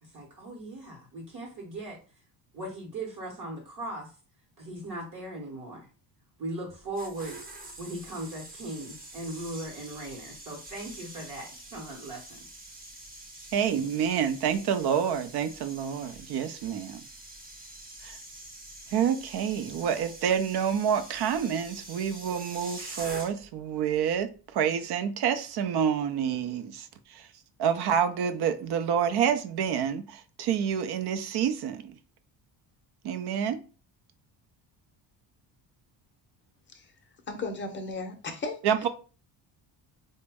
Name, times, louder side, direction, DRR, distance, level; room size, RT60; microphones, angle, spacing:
voice 1, 0.0-2.0 2.5-4.1 4.6-5.9 6.4-7.4 7.8-12.4, right 1 dB, 45° right, 0 dB, 1.0 m, -38 dB
sound 1, 6.7-23.6 23.9-24.2, right 2 dB, 20° right, 0.7 m, -46 dB
voice 2, 13.5-17.0 18.0-18.2 18.9-27.3 27.6-32.0 33.0-33.6 38.6-38.9, right 8 dB, 60° right, 10 dB, 0.6 m, -28 dB
voice 3, 37.3-38.6, left 3 dB, 25° left, 4 dB, 0.6 m, -35 dB
4.0 x 2.2 x 3.4 m, 0.35 s
cardioid pair, 145°, 46 cm